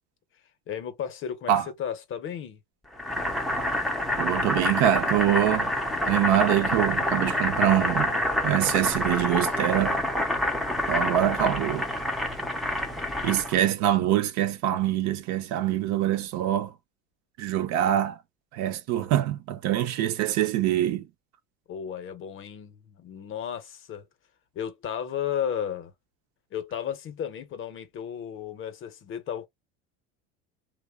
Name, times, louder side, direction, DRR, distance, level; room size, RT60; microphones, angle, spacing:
voice 1, 0.7-1.5 1.8-2.6 21.7-24.1 24.5-25.9 26.5-29.5, left 9 dB, 35° left, 0.7 m, -34 dB
Boiling, 3.0-13.6, left 1 dB, ahead, 0.4 m, -27 dB
voice 2, 4.2-5.7 6.0-8.2 8.4-10.0 10.9-11.9 13.2-16.7 17.4-18.2 18.5-21.1, right 12 dB, 55° right, 0.6 m, -24 dB
2.8 x 2.0 x 2.2 m
supercardioid pair, 125°, 34 cm